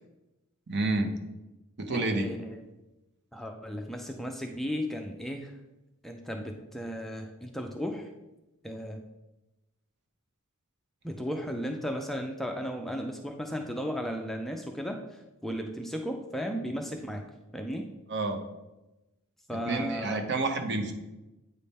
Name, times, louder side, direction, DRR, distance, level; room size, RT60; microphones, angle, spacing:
voice 1, 0.7-1.1 1.8-2.3 18.1-18.4 19.6-20.9, right 2 dB, 55° right, 5 dB, 0.8 m, -29 dB
voice 2, 1.9-2.6 3.3-5.5 6.0-8.1 8.6-9.0 11.0-17.3 17.5-17.9 19.5-20.2, equal, ahead, 3 dB, 0.4 m, -35 dB
8.3 x 3.5 x 4.2 m, 1.0 s
head